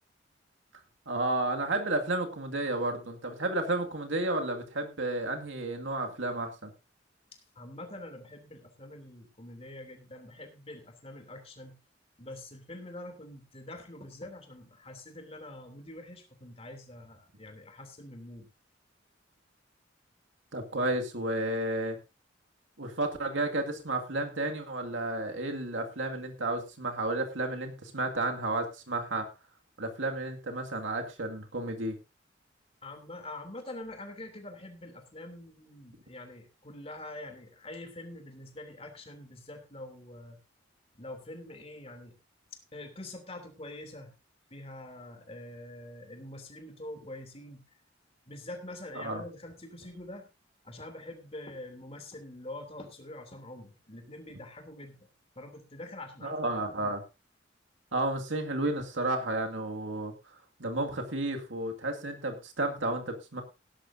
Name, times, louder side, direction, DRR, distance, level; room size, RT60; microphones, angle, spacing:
voice 1, 1.1-6.7 20.5-22.0 22.8-29.3 29.8-32.0 48.9-49.2 56.2-57.0 57.9-60.1 60.6-63.4, right 2 dB, 85° right, 3 dB, 2.2 m, -32 dB
voice 2, 7.3-11.8 12.2-18.5 32.8-40.4 40.9-42.2 42.5-44.1 44.5-47.6 48.3-50.3 50.6-55.1 55.3-56.9, left 1 dB, 35° left, 5 dB, 3.1 m, -45 dB
17.5 x 11.5 x 2.7 m, 0.27 s
head